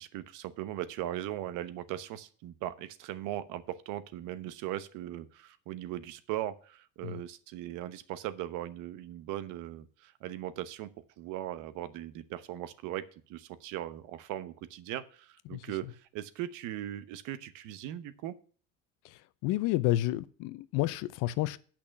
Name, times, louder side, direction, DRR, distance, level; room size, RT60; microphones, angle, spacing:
voice 1, 0.0-10.9 11.2-18.4, right 13 dB, 75° right, 1.1 m, -39 dB
voice 2, 19.4-21.6, left 16 dB, 80° left, 0.7 m, -30 dB
8.7 x 5.9 x 7.1 m
cardioid pair, 125°, 31 cm